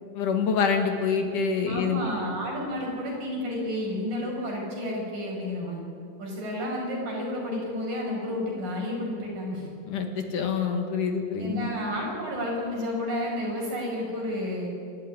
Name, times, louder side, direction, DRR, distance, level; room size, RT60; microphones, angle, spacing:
voice 1, 0.1-2.1 9.9-11.7, left 5 dB, 65° left, 5 dB, 3.2 m, -26 dB
voice 2, 1.7-5.8 6.2-9.7 11.4-14.7, left 1 dB, 65° right, -2 dB, 7.4 m, -31 dB
26.0 x 13.5 x 9.9 m, 2.6 s
omnidirectional pair, 4.2 m